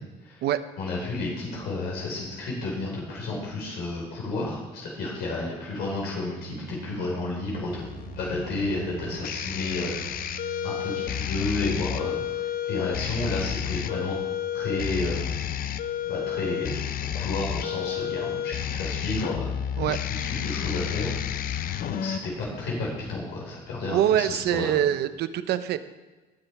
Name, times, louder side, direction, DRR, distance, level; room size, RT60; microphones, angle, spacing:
voice 1, 0.8-7.9 8.2-14.1 14.5-15.2 16.1-16.8 17.1-19.5 20.1-21.2 21.9-24.7, left 2 dB, 75° left, -3 dB, 4.8 m, -31 dB
sound 1, 5.9-11.2, right 5 dB, 45° right, 2.2 m, -43 dB
sound 2, 7.7-22.2, left 9 dB, 55° left, 0.6 m, -31 dB
voice 2, 23.9-25.8, right 11 dB, 75° right, 12 dB, 0.8 m, -24 dB
19.5 x 6.8 x 4.8 m, 1.2 s
cardioid pair, 110°, 17 cm